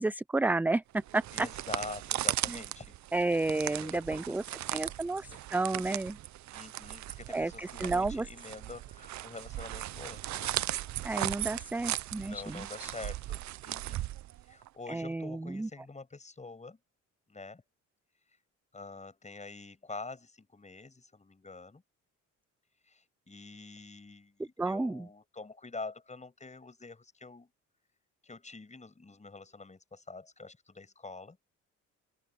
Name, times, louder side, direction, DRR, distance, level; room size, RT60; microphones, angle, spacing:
voice 1, 0.0-1.2 2.5-2.6 3.1-4.4 4.7-6.2 7.3-8.3 11.0-12.9 14.9-15.7 24.6-25.1, right 2 dB, 5° right, 0.4 m, -31 dB
sound 1, 1.0-14.7, right 14 dB, 70° right, 0.7 m, -37 dB
voice 2, 1.3-3.0 3.7-4.3 4.7-5.7 6.5-10.6 12.2-14.1 14.5-16.8 17.3-17.6 18.7-21.8 22.9-27.5 28.2-31.4, left 3 dB, 25° left, 6.8 m, -46 dB
open air
cardioid pair, 90°, 30 cm